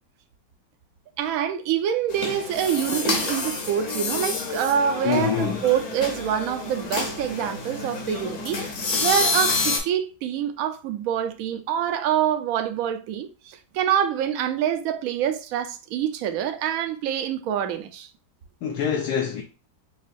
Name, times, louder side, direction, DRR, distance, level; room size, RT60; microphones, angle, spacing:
voice 1, 1.2-18.1, right 9 dB, 70° right, 0.8 m, -26 dB
sound 1, 2.1-9.8, left 3 dB, 55° left, 1.1 m, -28 dB
voice 2, 5.0-5.7 18.6-19.4, left 7 dB, 70° left, 1.0 m, -25 dB
5.9 x 2.3 x 2.6 m
omnidirectional pair, 1.9 m